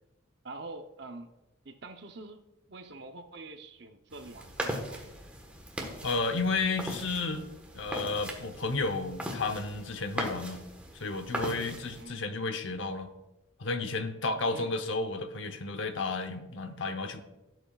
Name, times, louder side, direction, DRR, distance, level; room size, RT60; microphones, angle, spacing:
voice 1, 0.4-1.3 1.6-2.4 2.7-5.2 11.9-12.2 14.5-14.7, right 2 dB, 55° right, 7 dB, 0.8 m, -45 dB
sound 1, 4.1-12.0, equal, 5° right, 1.3 m, -39 dB
voice 2, 6.0-7.5 7.7-10.6 10.9-13.1 13.6-17.2, left 3 dB, 75° left, 8 dB, 0.9 m, -32 dB
16.5 x 7.9 x 2.4 m, 1.0 s
head